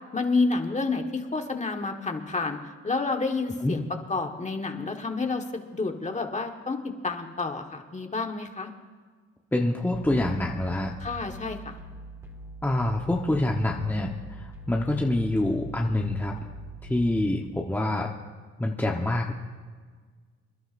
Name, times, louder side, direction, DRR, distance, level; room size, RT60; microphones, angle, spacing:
voice 1, 0.1-2.6 2.8-3.8 4.1-8.7 11.0-11.7, left 3 dB, 25° left, 4 dB, 1.5 m, -29 dB
voice 2, 9.5-10.9 12.6-16.3 16.9-18.1 18.6-19.3, left 1 dB, 5° left, 0 dB, 1.0 m, -26 dB
sound 1, 9.9-17.3, right 1 dB, 10° right, 2.4 m, -43 dB
27.0 x 11.5 x 2.6 m, 1.5 s
cardioid pair, 90°, 30 cm